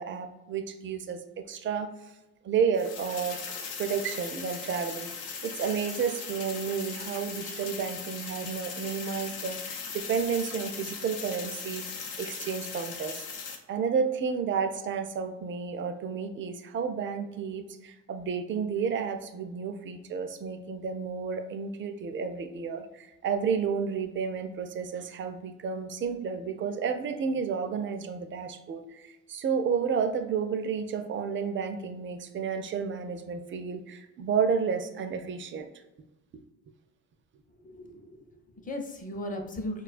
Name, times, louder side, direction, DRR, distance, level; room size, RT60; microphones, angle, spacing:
voice 1, 0.0-1.9 2.4-3.4 3.8-5.1 5.4-11.8 12.2-13.3 13.7-35.7, right 6 dB, 40° right, 7 dB, 0.4 m, -31 dB
sound 1, 2.7-13.6, left 5 dB, 90° left, 0.6 m, -39 dB
voice 2, 37.5-39.8, left 1 dB, 25° left, 3 dB, 0.6 m, -37 dB
4.2 x 2.3 x 2.4 m, 1.0 s
cardioid pair, 90°, 30 cm